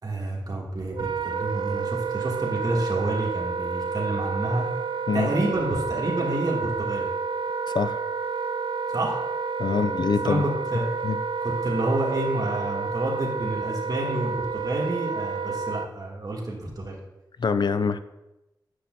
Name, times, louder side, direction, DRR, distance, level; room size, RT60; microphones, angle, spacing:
voice 1, 0.0-4.7 5.1-7.1 8.9-9.2 9.7-9.8 10.2-10.4 10.7-10.9 11.4-17.0, right 1 dB, 50° right, -2 dB, 2.8 m, -29 dB
Wind instrument woodwind instrument, 0.9-15.9, right 5 dB, 80° right, 0.5 m, -30 dB
voice 2, 9.6-10.4 11.0-11.2 17.4-18.0, left 5 dB, 65° left, 12 dB, 0.5 m, -24 dB
9.9 x 7.8 x 4.2 m, 0.96 s
wide cardioid pair, 70°, 8 cm